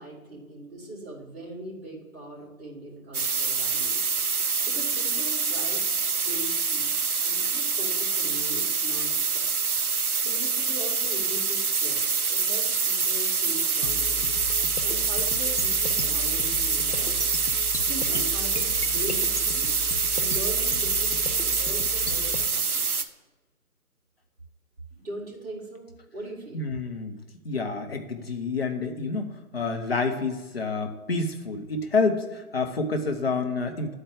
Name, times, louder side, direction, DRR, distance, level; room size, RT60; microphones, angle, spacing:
voice 1, 0.0-4.1 4.7-5.8 6.2-9.6 10.2-14.2 14.8-17.3 17.8-19.7 20.1-23.1 24.9-26.6, right 1 dB, 40° right, -5 dB, 3.0 m, -40 dB
sound 1, 3.1-23.0, right 5 dB, 75° right, 0.8 m, -26 dB
sound 2, 13.8-22.5, left 3 dB, 85° left, 1.1 m, -36 dB
voice 2, 26.5-27.2 27.4-33.9, left 3 dB, 40° left, 5 dB, 0.9 m, -28 dB
10.5 x 4.5 x 5.0 m, 1.2 s
figure-of-eight pair, 150°, 44 cm